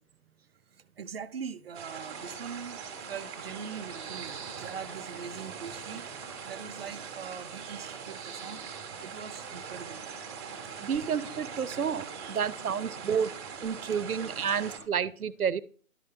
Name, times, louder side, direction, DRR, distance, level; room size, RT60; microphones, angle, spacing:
voice 1, 1.0-2.8 3.1-6.0 6.4-8.6 9.0-10.0, right 6 dB, 45° right, 14 dB, 0.6 m, -42 dB
sound 1, 1.7-14.8, right 6 dB, 15° right, 1.2 m, -41 dB
voice 2, 10.8-13.3 13.6-15.6, right 7 dB, 80° right, 17 dB, 0.8 m, -30 dB
11.5 x 5.4 x 4.5 m, 0.43 s
figure-of-eight pair, 150°, 43 cm